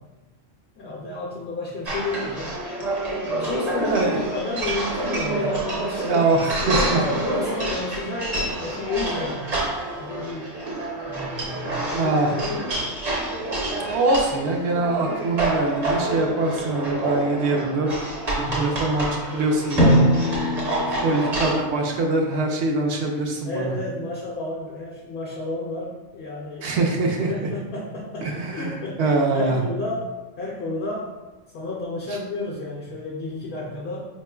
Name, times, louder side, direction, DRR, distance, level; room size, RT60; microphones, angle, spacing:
voice 1, 0.8-2.6 3.2-4.0 4.3-6.3 6.6-9.4 10.0-10.5 11.0-12.8 18.3-18.7 20.6-21.6 23.5-26.7 27.3-31.1 31.5-34.1, left 2 dB, 65° left, -5 dB, 0.7 m, -31 dB
sound 1, 1.9-21.6, right 2 dB, 40° right, 0.6 m, -28 dB
voice 2, 3.8-4.3 6.0-7.0 11.9-12.3 13.9-17.9 18.6-20.1 21.0-23.7 26.6-27.5 28.2-29.6 32.1-32.2, right 2 dB, 65° right, 1 dB, 0.8 m, -23 dB
Drum, 19.8-22.3, equal, 10° left, 0.4 m, -22 dB
4.1 x 3.0 x 2.2 m, 1.2 s
omnidirectional pair, 1.3 m